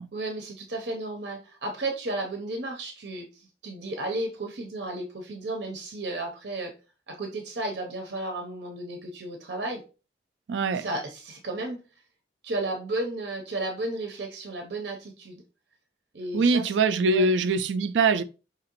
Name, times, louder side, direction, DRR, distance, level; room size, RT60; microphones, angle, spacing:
voice 1, 0.1-6.7 7.1-9.8 10.7-11.8 12.4-15.4 16.1-16.7 17.1-17.3, right 2 dB, 70° right, 0.8 m, -33 dB
voice 2, 10.5-10.9 16.3-18.2, right 3 dB, 90° right, 0.4 m, -23 dB
4.9 x 3.0 x 3.0 m
head